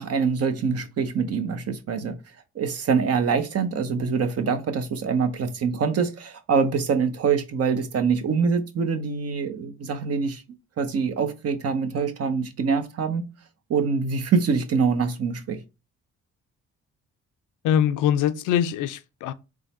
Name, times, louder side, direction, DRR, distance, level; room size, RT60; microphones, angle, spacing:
voice 1, 0.0-2.2 2.5-10.4 10.8-13.2 13.7-15.6, right 5 dB, 55° right, 0.8 m, -24 dB
voice 2, 17.6-19.3, left 9 dB, 85° left, 0.5 m, -23 dB
3.8 x 3.1 x 4.2 m
cardioid pair, 90°, 30 cm